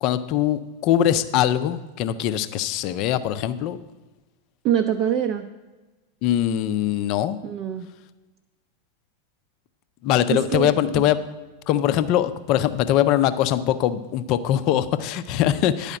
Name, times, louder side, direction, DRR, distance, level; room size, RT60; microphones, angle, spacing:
voice 1, 0.0-3.8 6.2-7.4 10.0-11.2 11.7-16.0, left 11 dB, 40° left, 12 dB, 0.5 m, -22 dB
voice 2, 4.6-5.5 7.4-7.9 10.3-11.0, right 9 dB, 40° right, 4 dB, 0.6 m, -24 dB
10.5 x 4.9 x 7.6 m, 1.2 s
figure-of-eight pair, 90°, 0 cm